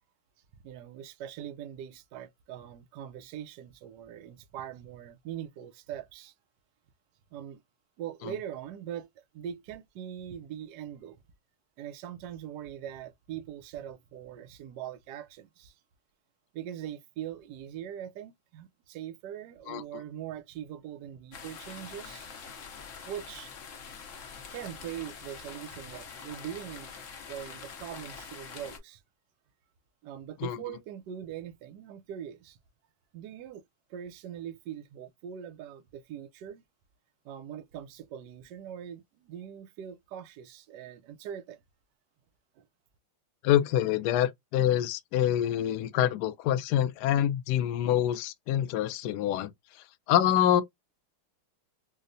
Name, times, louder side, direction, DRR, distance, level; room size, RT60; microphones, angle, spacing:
voice 1, 0.5-6.3 7.3-7.6 8.0-11.2 11.8-15.8 16.5-22.3 23.0-23.5 24.5-27.0 27.3-29.0 30.0-32.6 33.1-33.6 33.9-36.6 37.2-41.6 42.6-42.7, right 10 dB, 70° right, 1.1 m, -42 dB
sound 1, 21.3-28.8, left 6 dB, 60° left, 0.8 m, -45 dB
voice 2, 43.4-49.5 50.1-50.6, left 11 dB, 85° left, 0.9 m, -26 dB
4.7 x 2.1 x 2.6 m
omnidirectional pair, 2.3 m